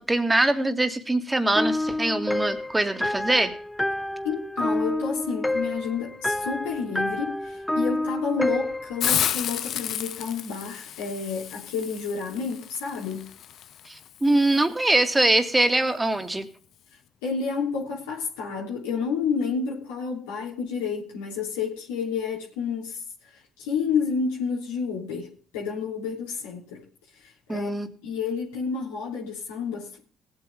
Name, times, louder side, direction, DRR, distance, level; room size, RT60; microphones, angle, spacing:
voice 1, 0.0-3.5 13.9-16.5 27.5-27.9, right 2 dB, 15° right, 2.3 m, -23 dB
sound 1, 1.5-9.1, left 1 dB, 10° left, 0.7 m, -28 dB
voice 2, 4.2-13.3 17.2-23.0 23.3-26.8 27.2-27.7 28.0-30.0, left 5 dB, 90° left, 3.2 m, -30 dB
Hiss, 9.0-14.6, left 10 dB, 65° left, 0.7 m, -32 dB
18.5 x 8.4 x 3.6 m
hypercardioid pair, 55°, 0 cm